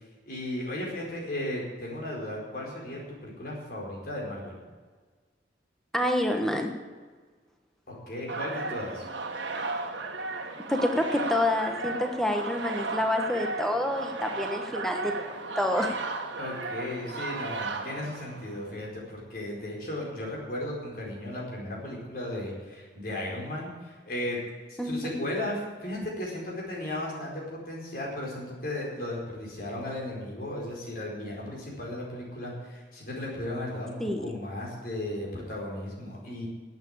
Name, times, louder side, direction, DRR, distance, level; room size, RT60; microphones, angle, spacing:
voice 1, 0.2-4.6 7.9-9.1 16.4-24.4 24.7-36.5, left 1 dB, 50° left, -3 dB, 4.7 m, -35 dB
voice 2, 5.9-6.7 10.7-15.1 15.6-15.9 24.8-25.1 34.0-34.2, left 1 dB, ahead, 3 dB, 1.2 m, -27 dB
sound 1, 8.3-18.7, right 3 dB, 80° right, 1.5 m, -35 dB
11.5 x 8.7 x 8.8 m, 1.5 s
head